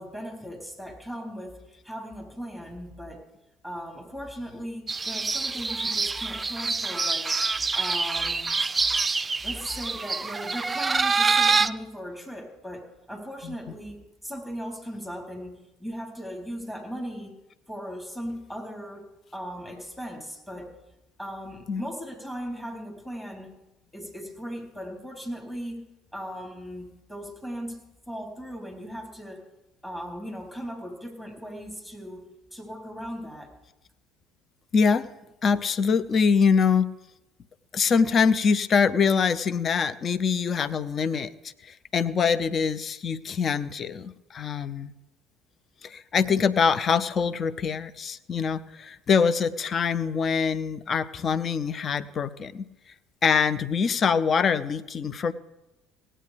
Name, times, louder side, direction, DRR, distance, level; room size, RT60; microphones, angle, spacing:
voice 1, 0.0-3.2 3.6-7.3 7.7-8.6 9.4-17.4 17.7-20.7 21.2-23.5 23.9-25.8 26.1-27.8 28.1-29.5 29.8-33.5, equal, 10° left, 1 dB, 4.0 m, -38 dB
sound 1, 4.9-11.7, right 4 dB, 20° right, 0.5 m, -26 dB
voice 2, 34.7-35.1 35.4-36.9 37.7-44.9 45.8-52.7 53.2-55.3, left 6 dB, 40° left, 14 dB, 0.6 m, -24 dB
17.5 x 8.8 x 5.2 m, 0.96 s
figure-of-eight pair, 60°, 0 cm